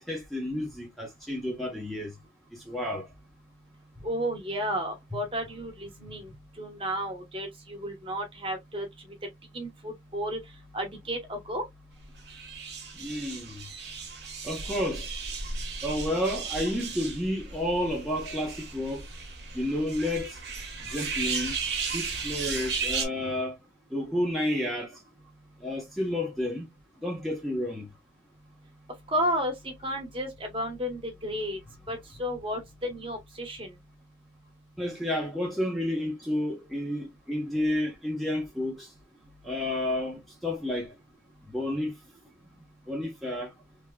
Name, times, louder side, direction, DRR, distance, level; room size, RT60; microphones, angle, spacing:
voice 1, 0.0-2.1 2.5-3.1 4.0-4.1 5.1-5.2 6.1-6.2 13.0-13.6 14.4-15.1 15.8-19.1 19.5-20.4 20.8-21.6 21.9-23.6 23.9-25.0 25.6-26.7 27.0-27.9 34.8-38.9 39.4-40.9 41.5-42.0 42.9-43.5, left 1 dB, ahead, 0.7 m, -31 dB
voice 2, 4.0-6.3 6.6-8.9 9.5-10.4 10.7-11.6 29.1-31.6 31.9-33.7, equal, 30° right, 0.9 m, -32 dB
sound 1, 12.2-23.0, right 5 dB, 60° right, 1.1 m, -35 dB
3.4 x 2.8 x 2.2 m
head